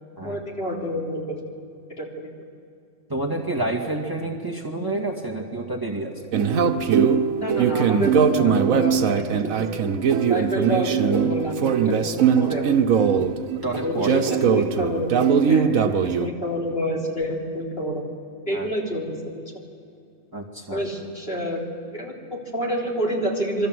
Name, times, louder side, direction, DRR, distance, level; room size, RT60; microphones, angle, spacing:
voice 1, 0.2-1.4 2.0-2.3 7.3-9.7 10.3-12.8 13.8-15.1 15.5-18.1 18.5-19.4 20.7-21.6 21.9-23.7, equal, 45° left, -2 dB, 3.9 m, -28 dB
voice 2, 3.1-6.1 13.6-14.2 18.5-18.7 20.3-20.8, right 2 dB, 15° right, 0 dB, 2.2 m, -28 dB
sound 1, 6.3-16.3, right 7 dB, 85° right, 1.4 m, -20 dB
28.0 x 23.0 x 7.9 m, 2.5 s
omnidirectional pair, 1.4 m